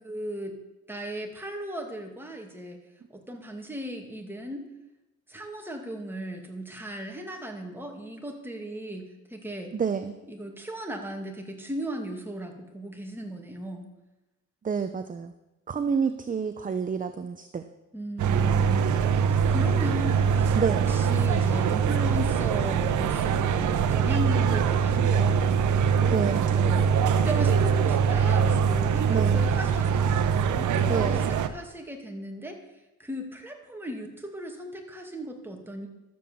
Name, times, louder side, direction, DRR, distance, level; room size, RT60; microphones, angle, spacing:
voice 1, 0.0-0.6 0.9-2.8 3.1-4.6 5.3-9.7 10.3-13.9 17.9-18.8 19.2-20.6 20.9-25.6 26.3-30.1 30.6-32.6 33.0-35.9, equal, 5° right, 2 dB, 2.3 m, -36 dB
voice 2, 9.7-10.2 14.6-15.3 15.7-17.6 20.5-20.9 26.0-26.4 29.1-29.4 30.9-31.2, right 6 dB, 25° right, 9 dB, 0.7 m, -28 dB
sound 1, 18.2-31.5, right 6 dB, 75° right, 1.0 m, -23 dB
13.0 x 7.8 x 7.0 m, 0.99 s
cardioid pair, 90°, 30 cm